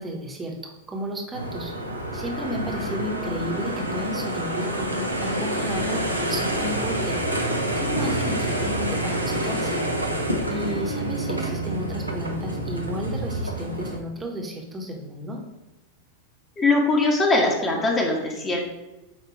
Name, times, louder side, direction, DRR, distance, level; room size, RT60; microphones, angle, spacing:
voice 1, 0.0-1.7 2.1-4.9 5.2-7.2 7.7-9.8 10.5-15.4, equal, 15° right, 0 dB, 1.3 m, -32 dB
sound 1, 1.3-14.0, right 1 dB, 85° right, 0.8 m, -27 dB
voice 2, 16.6-18.6, left 2 dB, 20° left, 0 dB, 1.5 m, -21 dB
8.7 x 2.9 x 4.4 m, 1.0 s
figure-of-eight pair, 90°, 0 cm